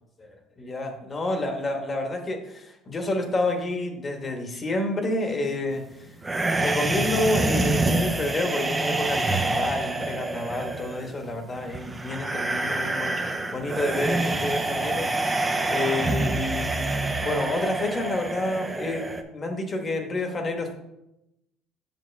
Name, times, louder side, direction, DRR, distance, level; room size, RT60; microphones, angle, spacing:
voice 1, 0.2-6.1 6.6-16.7 17.2-20.7, left 2 dB, 30° left, 4 dB, 1.3 m, -29 dB
sound 1, 6.2-19.2, right 2 dB, 15° right, 0.7 m, -27 dB
7.1 x 5.9 x 3.4 m, 0.87 s
cardioid pair, 105°, 0 cm